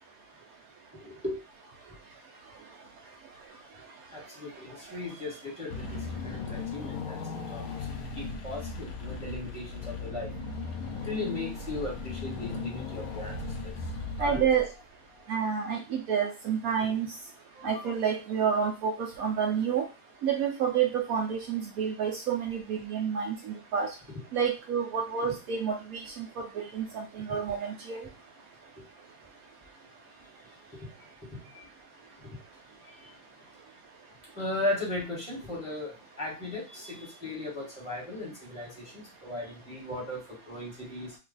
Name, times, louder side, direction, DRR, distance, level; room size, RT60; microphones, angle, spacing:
voice 1, 0.9-1.4 4.1-7.9 8.1-10.3 11.0-13.8 14.2-14.4 17.5-17.9 24.1-24.2 27.3-27.4 28.8-28.9 30.7-30.9 31.2-31.7 32.2-32.4 32.9-33.1 34.3-41.2, left 2 dB, 5° right, -5 dB, 1.3 m, -37 dB
Car / Engine, 5.7-14.9, left 4 dB, 70° left, 1.1 m, -37 dB
voice 2, 14.2-14.7 15.3-17.1 17.6-19.9 20.2-23.9 24.3-26.4 26.7-28.0, right 7 dB, 70° right, 1 dB, 1.0 m, -29 dB
3.0 x 2.3 x 3.9 m, 0.29 s
omnidirectional pair, 1.7 m